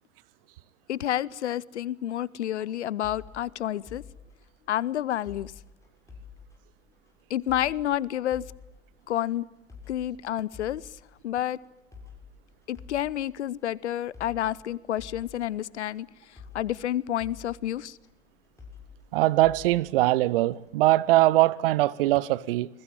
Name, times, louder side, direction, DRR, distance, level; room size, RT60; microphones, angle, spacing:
voice 1, 0.9-4.0 4.7-5.5 7.3-8.4 9.1-9.5 9.9-10.9 11.2-11.6 12.7-18.0, left 12 dB, 55° left, 0.9 m, -29 dB
sound 1, 3.0-20.8, left 6 dB, 5° left, 6.8 m, -50 dB
voice 2, 19.1-22.7, right 17 dB, 45° right, 1.0 m, -22 dB
28.5 x 21.5 x 9.2 m
figure-of-eight pair, 95°, 40 cm